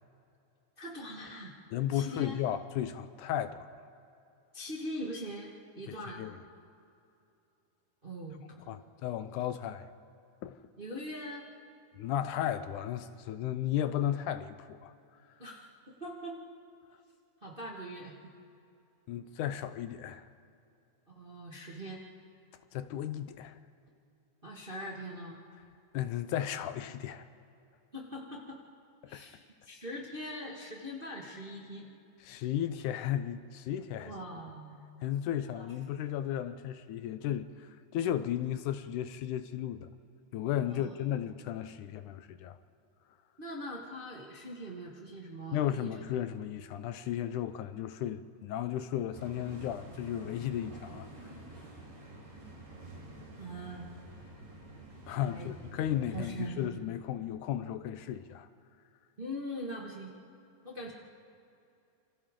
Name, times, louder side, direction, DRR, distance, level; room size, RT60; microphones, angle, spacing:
voice 1, 0.8-1.5 1.9-2.4 4.5-6.2 8.0-8.4 10.8-11.5 15.4-15.7 16.0-16.4 17.4-18.3 21.1-22.0 24.4-25.4 27.9-28.6 29.1-29.4 29.6-31.9 34.0-34.9 35.5-35.7 40.6-41.0 43.4-45.9 53.4-53.9 55.3-55.5 56.1-56.7 59.2-60.1 60.6-60.9, equal, 30° right, 1.0 m, -42 dB
voice 2, 1.7-3.7 5.9-6.3 8.7-9.9 10.4-10.6 11.9-14.9 19.1-20.3 22.7-23.6 25.9-27.3 29.1-29.2 32.2-34.1 35.0-39.9 40.3-42.6 45.5-51.1 55.1-58.5, left 11 dB, 80° left, 2.1 m, -34 dB
sound 1, 49.1-56.6, right 1 dB, 75° right, 5.3 m, -49 dB
28.0 x 25.5 x 3.7 m
omnidirectional pair, 3.7 m